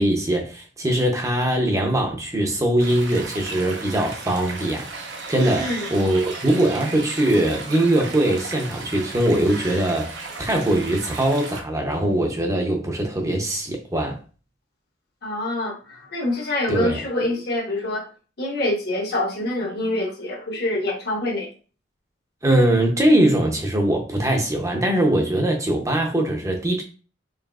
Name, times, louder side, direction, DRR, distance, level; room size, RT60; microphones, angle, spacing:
voice 1, 0.0-14.2 16.7-17.0 22.4-26.8, right 1 dB, 15° right, 0.6 m, -21 dB
sound 1, 2.8-11.6, right 3 dB, 70° right, 0.8 m, -35 dB
voice 2, 15.2-18.1 18.4-21.5, left 1 dB, 60° left, 1.3 m, -26 dB
4.7 x 3.0 x 2.4 m
head